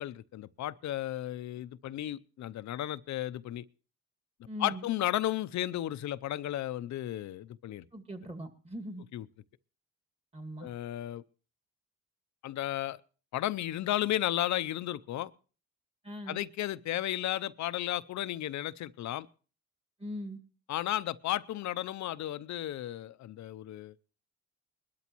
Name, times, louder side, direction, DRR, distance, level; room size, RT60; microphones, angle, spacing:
voice 1, 0.0-3.6 4.6-7.8 9.1-9.3 10.6-11.2 12.4-13.0 13.3-15.3 16.3-19.3 20.7-23.9, left 13 dB, 70° left, 0.6 m, -34 dB
voice 2, 4.5-4.9 7.9-9.0 10.3-10.7 16.0-16.4 20.0-20.4, equal, 20° right, 2.0 m, -40 dB
21.0 x 12.5 x 3.0 m
cardioid pair, 90°, 30 cm